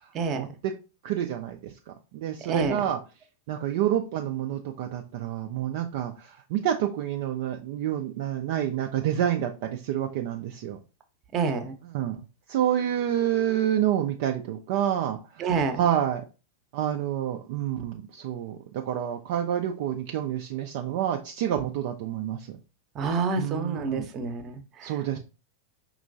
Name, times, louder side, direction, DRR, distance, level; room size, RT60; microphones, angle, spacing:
voice 1, 0.3-0.8 1.0-1.6 2.1-3.0 3.5-10.8 11.9-12.2 12.5-16.2 16.7-22.5 23.4-24.1 24.8-25.2, right 10 dB, 50° right, 3 dB, 0.4 m, -28 dB
voice 2, 2.5-2.8 11.3-11.7 15.4-15.8 23.0-25.2, right 4 dB, 30° right, 7 dB, 0.8 m, -28 dB
5.1 x 3.0 x 2.6 m, 0.32 s
figure-of-eight pair, 90°, 0 cm